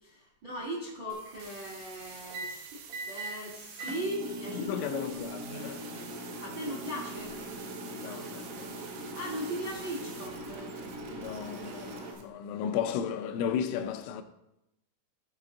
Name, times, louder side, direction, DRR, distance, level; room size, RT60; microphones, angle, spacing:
voice 1, 0.0-5.3 6.4-7.4 9.1-10.7, equal, 50° right, 1.4 m, -39 dB
sound 1, 0.6-0.9 2.3-2.5 2.9-3.3 3.8-12.1, right 1 dB, 65° right, 1.7 m, -41 dB
sound 2, 1.1-12.2, right 6 dB, 80° right, 3.3 m, -49 dB
voice 2, 4.5-5.9 7.8-8.8 11.1-14.2, left 8 dB, 85° left, 3.0 m, -35 dB
14.5 x 5.0 x 3.7 m
omnidirectional pair, 5.1 m